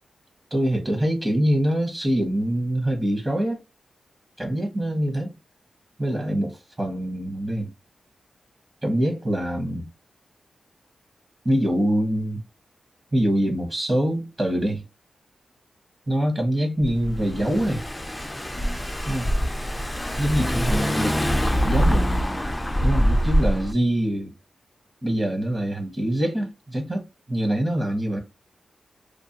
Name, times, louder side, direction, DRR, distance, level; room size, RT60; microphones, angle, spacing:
voice 1, 0.5-3.6 4.4-5.3 6.0-7.7 8.8-9.9 11.4-12.4 13.1-14.8 16.1-17.8 19.0-19.3 20.2-22.3 22.8-24.3 25.0-28.2, right 1 dB, 25° right, 0.9 m, -24 dB
Car / Engine, 16.8-23.7, equal, 10° left, 0.3 m, -24 dB
2.4 x 2.2 x 2.6 m
wide cardioid pair, 90°, 0 cm